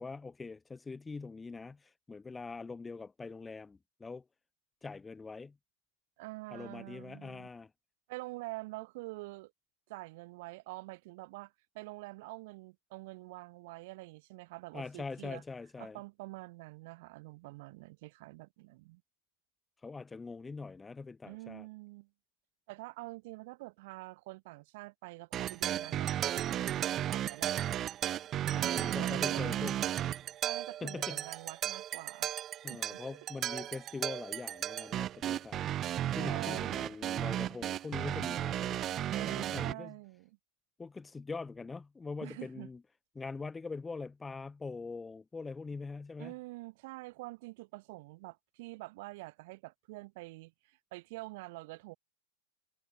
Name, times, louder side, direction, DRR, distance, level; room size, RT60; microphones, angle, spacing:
voice 1, 0.0-4.2 4.8-5.6 6.5-7.7 14.7-16.0 19.8-21.7 28.5-29.8 30.8-31.3 32.6-35.7 36.2-38.9 39.3-39.9 40.8-42.8 43.2-46.3, left 4 dB, 10° left, 2.0 m, -43 dB
voice 2, 6.2-7.5 8.1-9.5 9.9-15.4 15.8-19.0 21.2-22.1 22.7-27.6 28.5-29.7 30.4-32.3 32.7-33.0 36.1-36.9 39.1-40.4 42.2-42.7 46.2-52.0, right 22 dB, 50° right, 4.0 m, -46 dB
sound 1, 25.3-39.7, right 11 dB, 30° right, 0.5 m, -34 dB
figure-of-eight pair, 90°, 0 cm